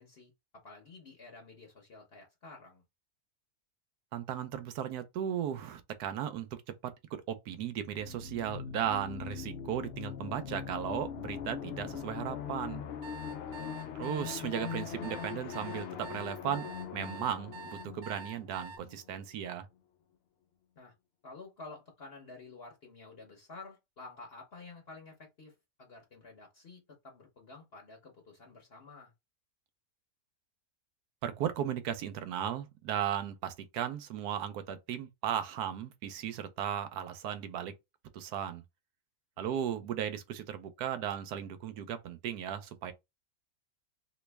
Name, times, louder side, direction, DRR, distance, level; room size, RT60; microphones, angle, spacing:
voice 1, 0.0-2.8 13.4-14.0 20.8-20.9 21.2-29.1 39.4-39.6, left 3 dB, 45° left, 1.0 m, -51 dB
voice 2, 4.1-6.9 7.3-12.8 13.9-19.7 31.2-37.7 38.1-38.6 39.4-42.9, right 9 dB, 85° right, 1.2 m, -36 dB
sound 1, 8.0-19.5, left 7 dB, 90° left, 0.5 m, -41 dB
sound 2, 13.0-18.8, right 3 dB, 60° right, 1.2 m, -46 dB
3.1 x 2.9 x 3.3 m
omnidirectional pair, 1.6 m